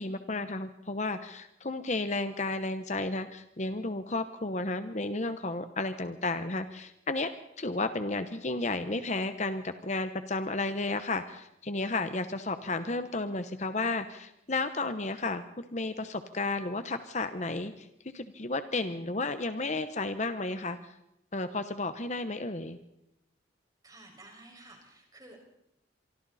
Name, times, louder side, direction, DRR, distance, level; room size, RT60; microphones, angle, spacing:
voice 1, 0.0-7.3 7.6-20.8 21.3-22.8, left 2 dB, 35° left, 10 dB, 1.0 m, -33 dB
voice 2, 23.8-25.4, right 2 dB, 20° right, 1 dB, 5.8 m, -52 dB
26.5 x 24.0 x 4.2 m, 0.83 s
head